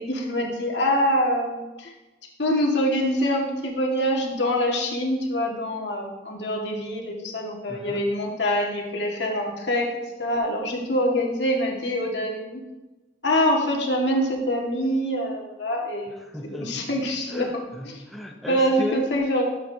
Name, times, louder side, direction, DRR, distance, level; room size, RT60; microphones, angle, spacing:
voice 1, 0.0-1.9 2.4-9.9 10.2-12.6 13.2-16.1 16.6-17.5 17.9-18.0 18.5-19.4, equal, 80° left, 0 dB, 1.8 m, -25 dB
voice 2, 7.7-8.0 16.1-16.9 17.3-19.1, left 1 dB, ahead, -1 dB, 0.8 m, -35 dB
13.0 x 7.5 x 2.8 m, 1.1 s
head